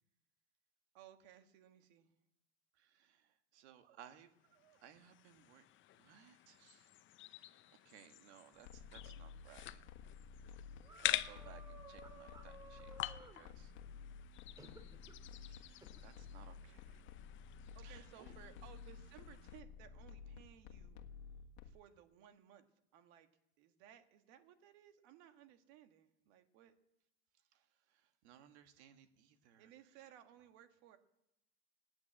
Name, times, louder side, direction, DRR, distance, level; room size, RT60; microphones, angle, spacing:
voice 1, 0.9-2.1 17.7-21.0 21.6-22.7 22.9-23.3 23.6-26.7 29.6-31.0, right 10 dB, 60° right, 8 dB, 1.7 m, -60 dB
voice 2, 2.7-5.6 6.0-6.9 7.7-9.8 11.0-13.7 15.5-17.0 17.8-18.3 27.5-29.7, right 10 dB, 80° right, 8 dB, 1.6 m, -62 dB
sound 1, 4.4-19.6, left 14 dB, 35° left, 0.7 m, -47 dB
sound 2, 8.5-21.7, left 6 dB, 75° left, 1.5 m, -53 dB
sound 3, 10.8-13.4 14.6-15.2 15.8-16.0, right 2 dB, 10° right, 2.0 m, -57 dB
17.0 x 9.7 x 8.7 m, 0.87 s
supercardioid pair, 120°, 33 cm